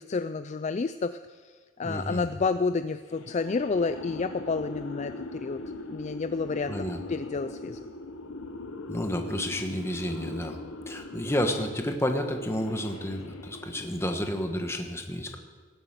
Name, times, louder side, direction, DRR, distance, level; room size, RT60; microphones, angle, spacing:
voice 1, 0.0-5.6 5.9-6.7 7.1-7.8, left 4 dB, 35° left, 11 dB, 0.3 m, -30 dB
voice 2, 1.8-2.3 6.7-7.0 8.9-10.6 10.9-15.4, equal, 15° left, 4 dB, 1.3 m, -30 dB
sound 1, 3.1-14.3, left 2 dB, 80° left, 1.1 m, -41 dB
18.5 x 8.0 x 8.2 m, 1.5 s
head